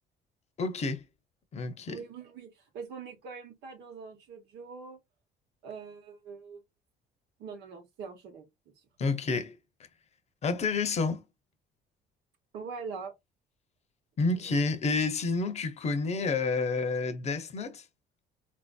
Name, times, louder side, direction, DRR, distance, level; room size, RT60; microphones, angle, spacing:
voice 1, 0.6-1.0 1.5-2.0 9.0-9.6 10.4-11.2 14.2-17.8, left 3 dB, 40° left, 0.7 m, -29 dB
voice 2, 1.9-5.0 5.6-6.6 7.4-8.4 12.5-13.1 14.3-14.6, right 5 dB, 80° right, 1.1 m, -43 dB
3.9 x 2.6 x 2.3 m
cardioid pair, 110°, 17 cm